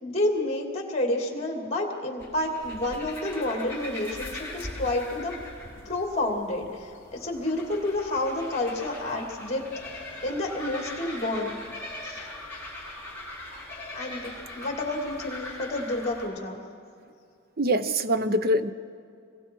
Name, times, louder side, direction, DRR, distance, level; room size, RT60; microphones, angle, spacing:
voice 1, 0.0-5.3 5.8-11.5 12.0-12.2 13.9-16.6, left 1 dB, 30° left, 2 dB, 2.6 m, -30 dB
sound 1, 2.2-16.3, left 1 dB, 10° left, 5.3 m, -41 dB
voice 2, 17.6-18.7, equal, 45° right, 11 dB, 0.8 m, -24 dB
27.0 x 22.0 x 4.7 m, 2.4 s
head